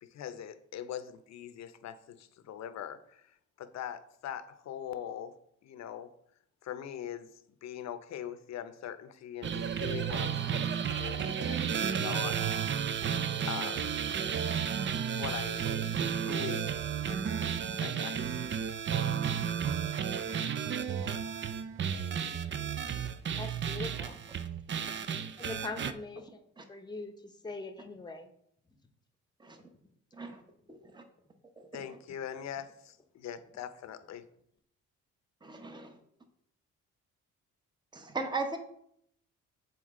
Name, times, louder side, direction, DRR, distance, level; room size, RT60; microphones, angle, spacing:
voice 1, 0.0-5.4 5.6-6.1 6.6-12.6 13.5-14.0 15.1-15.7 16.2-18.4 31.7-34.3, left 9 dB, 60° left, 11 dB, 0.7 m, -42 dB
sound 1, 9.4-25.9, right 8 dB, 40° right, 0.5 m, -32 dB
voice 2, 23.4-24.2 25.4-28.3, left 3 dB, 15° left, 7 dB, 0.9 m, -42 dB
voice 3, 30.7-31.0 35.4-35.9 37.9-38.6, right 3 dB, 15° right, 6 dB, 0.9 m, -37 dB
8.0 x 4.2 x 3.7 m, 0.71 s
cardioid pair, 90°, 30 cm